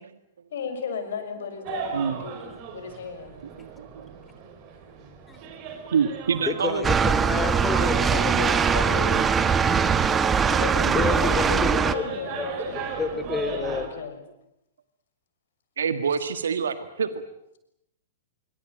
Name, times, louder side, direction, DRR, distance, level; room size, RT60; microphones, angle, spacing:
voice 1, 0.5-3.4 7.9-9.3 10.2-12.9 13.3-14.2, left 6 dB, 65° left, 7 dB, 6.4 m, -34 dB
sound 1, 1.6-13.9, right 6 dB, 40° right, 5.6 m, -36 dB
voice 2, 3.6-4.1 5.9-6.8 9.1-9.3 15.8-17.1, right 6 dB, 70° right, 11 dB, 1.6 m, -26 dB
voice 3, 6.5-8.0 10.9-12.0 12.3-12.5 13.0-13.9, left 5 dB, 15° left, 9 dB, 3.7 m, -29 dB
sound 2, 6.8-11.9, right 6 dB, 15° right, 1.4 m, -22 dB
26.0 x 24.0 x 8.9 m, 0.81 s
figure-of-eight pair, 105°, 0 cm